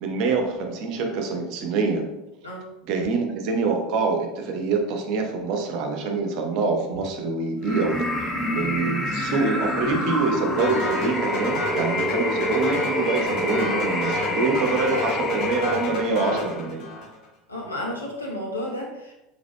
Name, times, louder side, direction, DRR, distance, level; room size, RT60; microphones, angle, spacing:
voice 1, 0.0-2.0 2.9-8.0 8.5-16.9, right 4 dB, 50° right, 3 dB, 0.8 m, -25 dB
sound 1, 7.6-16.7, left 1 dB, 20° left, 0.9 m, -27 dB
sound 2, 10.6-17.3, left 2 dB, 50° left, 1.2 m, -33 dB
voice 2, 17.5-19.1, left 1 dB, 90° left, -4 dB, 1.0 m, -32 dB
4.9 x 4.2 x 2.2 m, 0.92 s
figure-of-eight pair, 70°, 0 cm